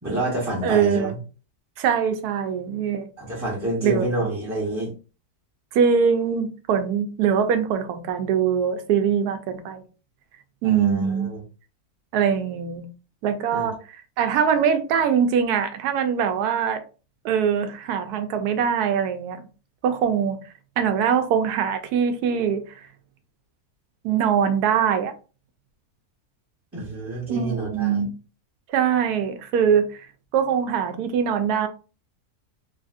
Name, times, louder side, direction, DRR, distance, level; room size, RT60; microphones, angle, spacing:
voice 1, 0.0-1.2 3.2-4.9 10.6-11.4 13.5-13.7 26.7-28.0, right 1 dB, 15° right, 0.6 m, -28 dB
voice 2, 0.6-1.1 1.8-3.1 3.8-4.1 5.7-9.8 10.6-11.3 12.1-12.9 13.2-13.8 14.2-16.8 17.2-19.4 19.8-20.4 20.8-22.8 24.0-25.1 27.3-28.1 28.7-29.9 30.3-31.7, right 7 dB, 80° right, 1.1 m, -22 dB
3.2 x 2.5 x 2.4 m
omnidirectional pair, 1.7 m